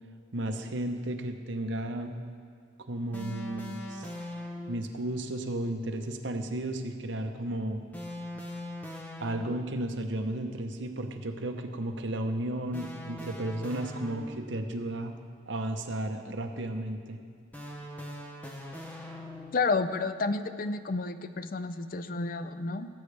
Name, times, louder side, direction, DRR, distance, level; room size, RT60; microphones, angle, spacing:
voice 1, 0.3-2.2 2.8-4.1 4.7-7.8 9.2-15.2 15.5-17.2, right 1 dB, 65° right, 5 dB, 0.8 m, -33 dB
sound 1, 3.1-4.9 7.9-9.8 12.7-14.7 17.5-19.7, left 1 dB, 10° left, 0.8 m, -41 dB
voice 2, 19.5-22.9, left 3 dB, 45° left, 11 dB, 0.4 m, -30 dB
18.0 x 8.0 x 3.4 m, 2.2 s
head